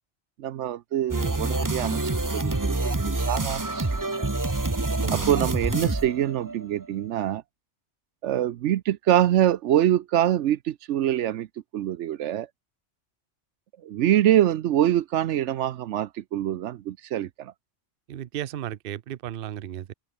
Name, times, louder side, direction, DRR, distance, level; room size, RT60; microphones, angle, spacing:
voice 1, 0.4-4.3 5.1-7.4 8.2-11.5 11.7-12.5 13.8-17.5, right 12 dB, 80° right, 0.9 m, -25 dB
sound 1, 1.1-6.9, right 2 dB, 15° right, 1.1 m, -27 dB
voice 2, 18.1-19.9, right 11 dB, 55° right, 0.8 m, -34 dB
omnidirectional pair, 1.2 m